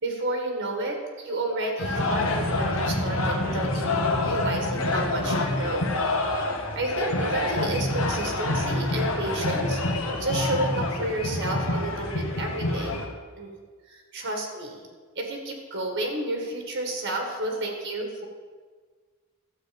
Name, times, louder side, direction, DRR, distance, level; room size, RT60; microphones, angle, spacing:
voice 1, 0.0-6.0 6.6-13.0 13.4-13.5 13.9-14.9 15.2-18.3, right 2 dB, 60° right, 2 dB, 1.8 m, -31 dB
sound 1, 1.8-13.1, left 2 dB, 70° left, 1.4 m, -27 dB
12.5 x 8.0 x 5.2 m, 1.5 s
head